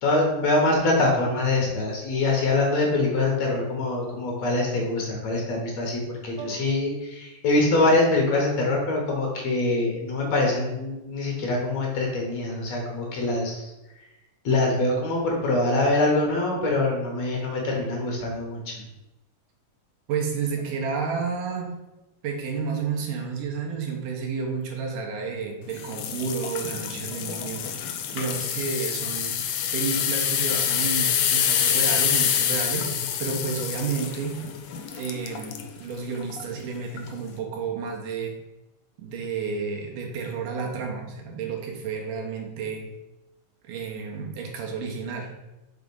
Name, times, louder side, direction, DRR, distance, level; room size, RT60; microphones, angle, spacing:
voice 1, 0.0-13.6 14.4-18.8, left 2 dB, 60° left, 0 dB, 2.3 m, -24 dB
voice 2, 6.4-6.7 16.2-16.3 20.1-21.7 22.2-27.7 28.1-29.4 29.7-32.9 33.2-34.4 34.9-38.4 39.0-42.8 43.7-45.3, right 5 dB, 85° right, 0 dB, 2.7 m, -31 dB
sound 1, 25.8-35.7 36.2-36.4 37.0-37.1, left 9 dB, 80° left, 1.5 m, -26 dB
6.6 x 3.6 x 5.3 m, 0.99 s
omnidirectional pair, 3.7 m